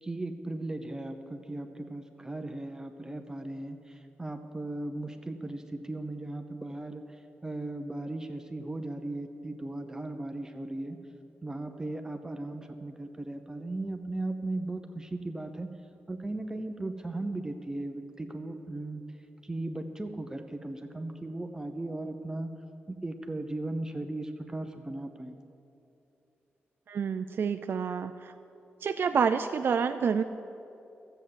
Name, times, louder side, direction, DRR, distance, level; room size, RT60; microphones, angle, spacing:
voice 1, 0.0-11.0 11.4-15.7 16.1-19.0 19.4-22.5 22.9-25.4, right 2 dB, 15° right, 6 dB, 0.8 m, -37 dB
voice 2, 26.9-28.3 28.8-30.2, right 6 dB, 60° right, 8 dB, 0.4 m, -28 dB
12.5 x 7.9 x 7.5 m, 2.8 s
cardioid pair, 90°, 4 cm